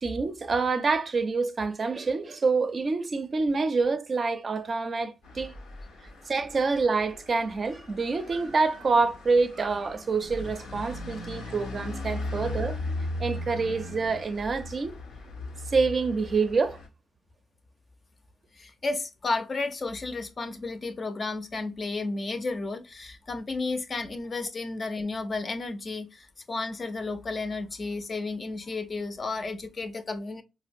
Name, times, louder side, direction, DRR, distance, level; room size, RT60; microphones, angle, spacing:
voice 1, 0.0-5.6 6.3-12.8 13.2-15.0 15.7-16.8, right 4 dB, 50° right, 0.4 m, -27 dB
sound 1, 5.2-16.9, left 2 dB, 85° left, 0.7 m, -38 dB
voice 2, 18.5-30.4, left 3 dB, 45° left, 0.5 m, -32 dB
4.4 x 2.0 x 2.5 m
supercardioid pair, 55°, 0 cm